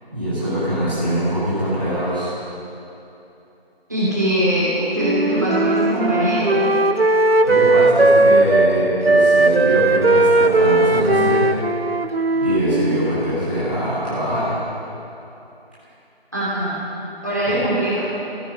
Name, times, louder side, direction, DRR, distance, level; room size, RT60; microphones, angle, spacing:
voice 1, 0.1-2.3 7.4-11.5 12.4-14.6 17.4-17.6, equal, 10° left, -17 dB, 2.1 m, -22 dB
voice 2, 3.9-6.6 16.3-16.8 17.2-18.1, right 1 dB, 20° right, -9 dB, 2.9 m, -21 dB
Wind instrument woodwind instrument, 5.0-8.7 9.0-13.1, right 2 dB, 70° right, 0.8 m, -17 dB
15.0 x 14.0 x 6.7 m, 2.9 s
figure-of-eight pair, 175°, 31 cm